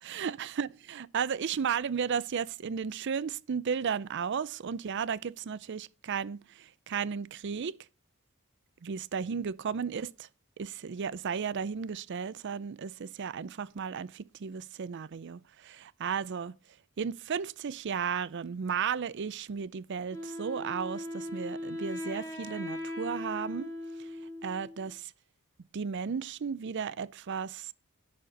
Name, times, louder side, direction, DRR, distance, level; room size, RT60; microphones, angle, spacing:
voice 1, 0.0-7.7 8.8-10.3 10.6-15.4 16.0-16.6 17.0-23.7 24.0-24.1 24.4-25.1 25.7-27.7, right 6 dB, 55° right, 0.5 m, -34 dB
Wind instrument woodwind instrument, 20.1-24.9, left 1 dB, 15° left, 1.6 m, -39 dB
11.5 x 4.3 x 6.4 m
head